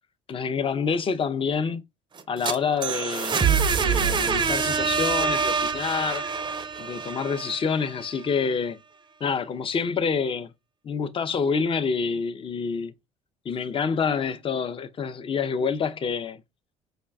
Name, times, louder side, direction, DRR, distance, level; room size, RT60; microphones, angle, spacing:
voice 1, 0.3-1.8 2.3-6.3 6.8-8.8 9.2-10.5 10.8-12.9 13.4-16.4, left 5 dB, 35° left, 0.5 m, -27 dB
sound 1, 2.2-8.1, right 6 dB, 30° right, 0.5 m, -25 dB
4.9 x 2.2 x 2.3 m
hypercardioid pair, 60°, 16 cm